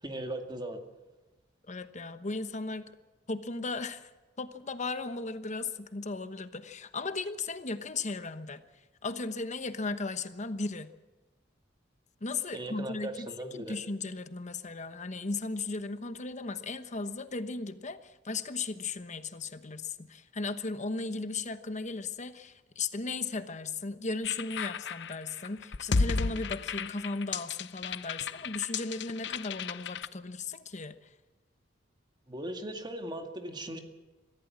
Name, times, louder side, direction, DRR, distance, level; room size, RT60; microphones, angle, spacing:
voice 1, 0.0-0.8 12.5-13.8 32.3-33.8, right 1 dB, 25° right, 5 dB, 2.1 m, -38 dB
voice 2, 1.7-2.9 3.3-4.1 4.4-8.6 9.0-10.9 12.2-31.1, left 3 dB, 40° left, 11 dB, 1.1 m, -36 dB
sound 1, 24.2-30.1, left 4 dB, 65° left, 0.7 m, -33 dB
23.0 x 15.5 x 7.5 m, 1.2 s
head